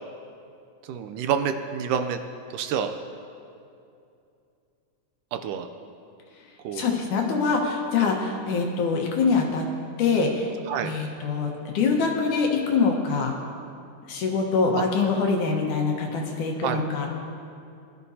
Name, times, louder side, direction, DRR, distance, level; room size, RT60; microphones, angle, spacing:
voice 1, 0.9-2.2 2.5-2.9 5.3-5.7 6.6-7.0 8.0-8.1 10.7-10.9 14.7-14.8 16.6-16.8, right 8 dB, 80° right, 7 dB, 2.1 m, -28 dB
voice 2, 6.7-9.6 10.0-10.5 10.8-13.3 14.1-17.2, left 4 dB, 70° left, 0 dB, 2.6 m, -24 dB
21.0 x 12.5 x 2.8 m, 2.5 s
omnidirectional pair, 3.9 m